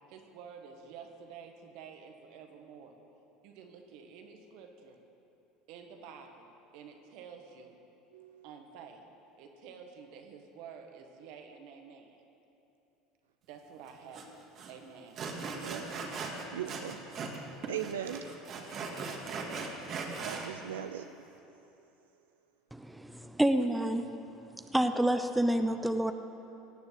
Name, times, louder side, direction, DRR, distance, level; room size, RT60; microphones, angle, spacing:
voice 1, 0.1-3.0 3.4-5.0 5.7-7.8 8.4-9.1 9.4-12.2 13.5-15.3, right 6 dB, 65° right, 4 dB, 1.6 m, -50 dB
voice 2, 8.1-8.5 15.6-15.9 16.5-17.0 17.3-18.7 20.2-21.1, right 9 dB, 90° right, 7 dB, 0.5 m, -40 dB
Sawing, 14.1-14.2 14.6-14.7 15.2-17.4 17.6-20.5, right 4 dB, 50° right, 2.0 m, -39 dB
voice 3, 22.7-24.0 24.7-26.1, right 1 dB, 5° right, 8 dB, 0.7 m, -28 dB
17.0 x 7.0 x 8.4 m, 2.9 s
hypercardioid pair, 80°, 0 cm